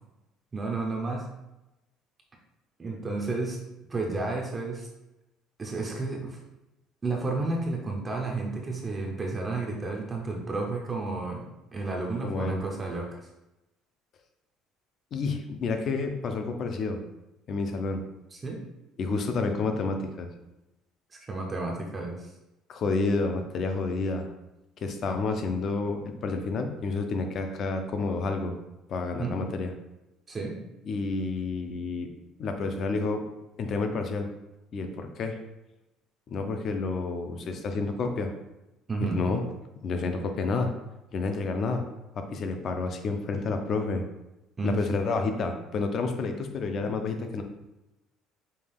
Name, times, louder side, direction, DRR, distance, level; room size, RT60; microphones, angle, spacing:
voice 1, 0.5-1.3 2.8-3.6 3.9-4.9 5.6-6.4 7.0-11.5 11.7-13.2 18.3-18.6 21.1-22.3 29.2-29.4 30.3-30.6 38.9-39.2 44.6-44.8, right 3 dB, 20° right, 0 dB, 0.5 m, -31 dB
voice 2, 12.2-12.6 15.1-17.0 17.5-18.0 19.0-20.3 22.7-24.3 24.8-28.5 28.9-29.7 30.9-32.1 32.4-33.2 33.6-34.3 34.7-35.4 36.3-38.3 39.0-39.4 39.8-40.7 41.1-41.8 42.2-44.0 44.6-47.4, left 3 dB, 35° left, 6 dB, 0.5 m, -29 dB
5.4 x 2.3 x 3.4 m, 0.96 s
cardioid pair, 165°, 0 cm